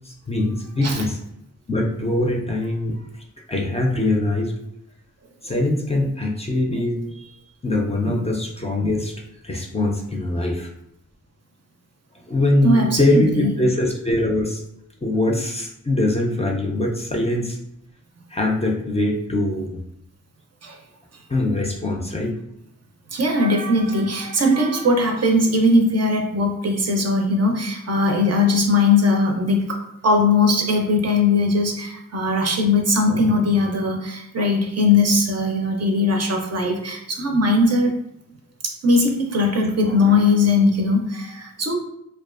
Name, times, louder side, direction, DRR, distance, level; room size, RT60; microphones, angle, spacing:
voice 1, 0.1-1.2 1.7-3.0 3.5-4.5 5.4-7.3 7.6-9.1 9.4-10.7 12.3-14.6 15.0-17.6 18.3-19.8 21.3-22.4, left 1 dB, 20° left, 0 dB, 0.4 m, -22 dB
voice 2, 12.6-13.6 20.6-20.8 23.1-37.9 38.6-41.8, left 2 dB, 55° right, 2 dB, 0.5 m, -19 dB
2.4 x 2.3 x 2.4 m, 0.79 s
wide cardioid pair, 65°, 30 cm